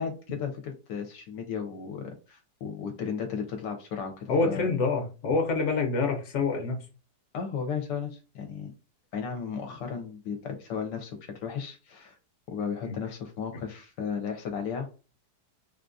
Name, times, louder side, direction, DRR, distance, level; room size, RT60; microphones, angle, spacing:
voice 1, 0.0-4.7 7.3-8.7 9.1-12.2 12.5-14.9, left 6 dB, 75° left, 4 dB, 1.2 m, -35 dB
voice 2, 4.3-6.9 12.8-13.0, left 4 dB, 50° left, 3 dB, 1.0 m, -26 dB
3.6 x 2.4 x 2.5 m, 0.33 s
omnidirectional pair, 1.9 m